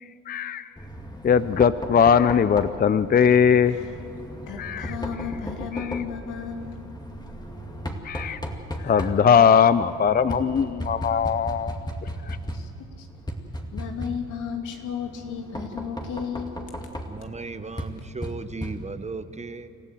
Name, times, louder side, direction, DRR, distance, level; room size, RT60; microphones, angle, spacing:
voice 1, 0.3-0.6 1.2-3.8 4.6-4.9 5.8-6.0 8.0-8.4 8.8-11.8, left 7 dB, 30° left, 14 dB, 0.5 m, -20 dB
Knock, 0.8-19.2, equal, 15° left, 2.3 m, -36 dB
voice 2, 4.5-6.8 12.5-13.1 13.7-16.5, left 7 dB, 90° left, 3 dB, 2.5 m, -34 dB
voice 3, 17.1-19.7, right 3 dB, 20° right, 11 dB, 1.0 m, -36 dB
27.5 x 14.5 x 7.6 m, 2.8 s
cardioid pair, 90°, 30 cm